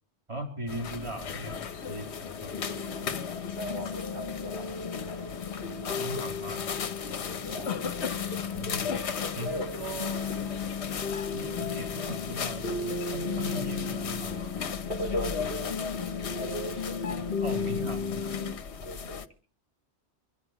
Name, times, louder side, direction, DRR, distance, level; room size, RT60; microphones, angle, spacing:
voice 1, 0.3-1.6 1.9-3.1 6.0-6.6 8.4-9.1 9.3-10.4 11.3-14.9 17.4-18.4, right 1 dB, 25° right, 1 dB, 3.4 m, -39 dB
sound 1, 0.7-19.3, left 6 dB, 75° left, 1.2 m, -36 dB
sound 2, 2.5-18.5, left 5 dB, 50° left, 1.4 m, -35 dB
voice 2, 3.6-5.3 5.9-6.3 7.4-7.7 9.4-9.7 15.0-15.7 16.3-17.0 18.8-19.2, equal, 85° right, 2 dB, 4.3 m, -38 dB
26.5 x 10.5 x 4.7 m, 0.41 s
omnidirectional pair, 1.1 m